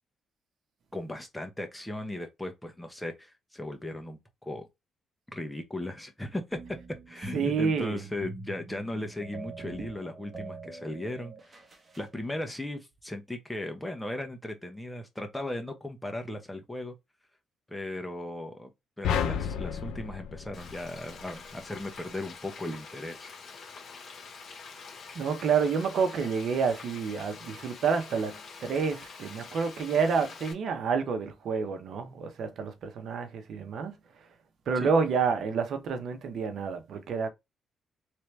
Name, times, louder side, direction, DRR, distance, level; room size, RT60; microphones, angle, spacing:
voice 1, 0.9-4.7 5.3-6.6 7.1-11.3 12.0-17.0 17.7-18.7 19.0-23.3 34.7-34.9, left 1 dB, 10° left, 1.1 m, -37 dB
sound 1, 6.5-12.1, right 2 dB, 25° right, 1.3 m, -44 dB
voice 2, 7.3-8.0 25.1-34.0 34.7-37.3, right 5 dB, 65° right, 0.8 m, -29 dB
sound 2, 19.0-21.5, left 8 dB, 85° left, 0.6 m, -32 dB
Frying (food), 20.5-30.5, left 5 dB, 55° left, 1.5 m, -46 dB
3.4 x 2.9 x 3.2 m
cardioid pair, 90°, 0 cm